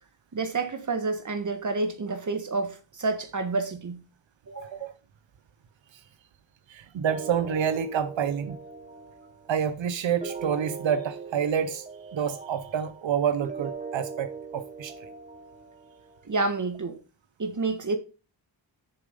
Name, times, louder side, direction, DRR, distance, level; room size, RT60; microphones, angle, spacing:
voice 1, 0.3-4.0 4.5-4.8 16.3-17.0 17.4-18.0, right 3 dB, 40° right, 1.7 m, -29 dB
voice 2, 6.7-8.6 9.5-11.9 12.1-15.1, right 8 dB, 85° right, 0.8 m, -28 dB
sound 1, 7.1-16.2, right 5 dB, 15° right, 1.2 m, -40 dB
7.2 x 6.8 x 5.3 m
wide cardioid pair, 115°, 45 cm